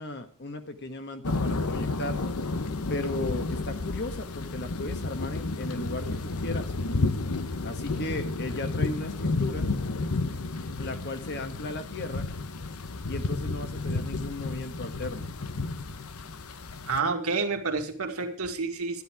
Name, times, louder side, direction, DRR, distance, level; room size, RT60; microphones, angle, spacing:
voice 1, 0.0-2.2 2.9-6.7 7.6-9.7 10.8-12.3 13.1-15.3, left 2 dB, 50° left, 7 dB, 1.5 m, -36 dB
sound 1, 1.2-17.0, left 3 dB, 85° left, 1.0 m, -31 dB
voice 2, 16.9-19.0, right 4 dB, 80° right, 4 dB, 2.0 m, -29 dB
12.5 x 10.5 x 4.9 m, 0.42 s
head